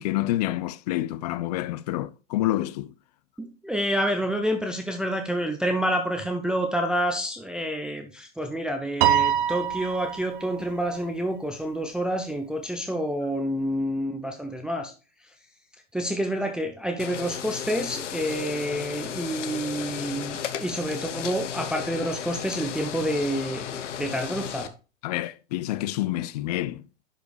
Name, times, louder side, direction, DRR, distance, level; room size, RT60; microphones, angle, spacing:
voice 1, 0.0-2.9 25.0-26.8, left 15 dB, 35° left, 0.4 m, -28 dB
voice 2, 3.4-14.9 15.9-24.7, equal, ahead, 0.6 m, -28 dB
Piano, 9.0-10.5, right 10 dB, 45° right, 0.7 m, -24 dB
sound 1, 17.0-24.7, left 9 dB, 70° left, 0.9 m, -34 dB
10.5 x 5.0 x 3.3 m
hypercardioid pair, 105°, 38 cm